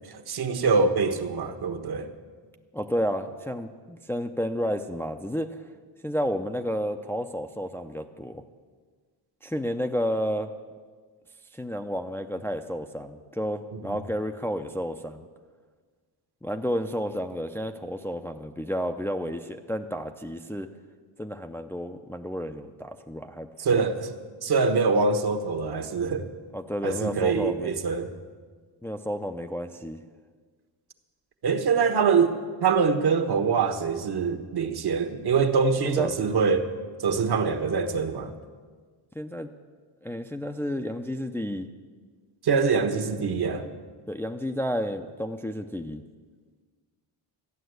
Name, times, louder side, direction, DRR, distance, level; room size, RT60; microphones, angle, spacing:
voice 1, 0.1-2.1 13.7-14.0 23.6-24.1 24.4-26.3 26.8-28.1 31.4-32.3 32.6-36.7 37.0-38.3 42.4-43.7, right 5 dB, 55° right, 7 dB, 1.3 m, -24 dB
voice 2, 2.7-5.6 6.0-8.4 9.4-10.5 11.5-15.3 16.4-20.7 21.2-23.8 26.5-27.7 28.8-30.0 35.8-36.1 39.1-39.5 40.0-41.7 44.1-46.0, equal, 5° left, 4 dB, 0.5 m, -31 dB
13.5 x 9.2 x 7.9 m, 1.5 s
cardioid pair, 110°, 46 cm